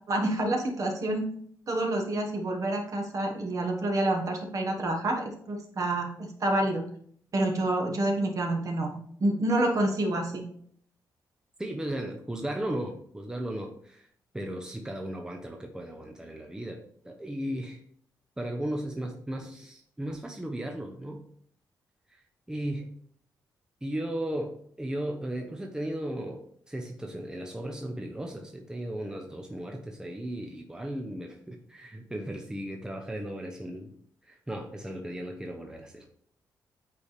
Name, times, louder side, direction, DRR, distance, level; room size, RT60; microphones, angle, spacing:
voice 1, 0.1-1.3 1.7-6.9 7.3-10.5, right 1 dB, 50° right, 2 dB, 1.4 m, -28 dB
voice 2, 11.6-14.1 14.3-17.8 18.4-21.2 22.1-22.9 23.8-33.9 34.2-36.1, right 1 dB, 10° right, 3 dB, 0.7 m, -36 dB
8.4 x 4.1 x 3.3 m, 0.63 s
cardioid pair, 110°, 7 cm